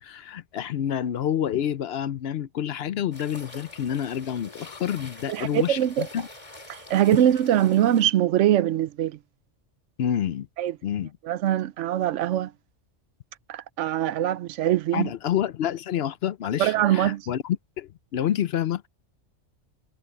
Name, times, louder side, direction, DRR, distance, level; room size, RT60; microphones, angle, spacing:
voice 1, 0.0-6.3 10.0-10.5 10.8-11.2 14.9-18.9, left 10 dB, 60° left, 0.8 m, -28 dB
sound 1, 3.1-8.1, left 2 dB, 25° left, 2.6 m, -46 dB
voice 2, 5.3-6.1 6.7-9.2 10.6-10.7 11.2-12.5 13.5-15.1 16.6-17.2, right 11 dB, 75° right, 0.9 m, -22 dB
omnidirectional pair, 1.3 m